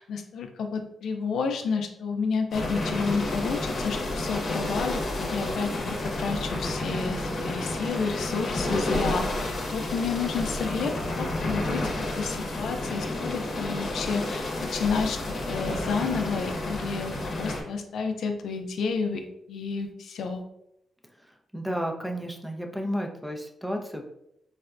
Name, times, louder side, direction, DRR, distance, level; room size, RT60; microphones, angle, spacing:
voice 1, 0.0-20.4, left 5 dB, 80° left, 5 dB, 0.4 m, -31 dB
sound 1, 2.5-17.6, left 2 dB, 55° left, 0.8 m, -30 dB
voice 2, 21.5-24.1, equal, 5° right, 3 dB, 0.5 m, -32 dB
4.0 x 2.2 x 2.4 m, 0.79 s
cardioid pair, 90°, 0 cm